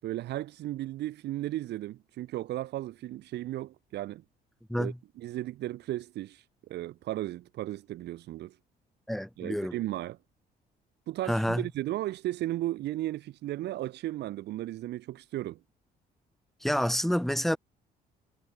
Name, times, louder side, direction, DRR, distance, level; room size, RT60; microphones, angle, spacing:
voice 1, 0.0-4.2 4.7-8.6 9.4-10.2 11.1-15.6, right 15 dB, 80° right, 7.7 m, -35 dB
voice 2, 9.1-9.8 11.3-11.7 16.6-17.6, equal, ahead, 7.8 m, -28 dB
cardioid pair, 145°, 17 cm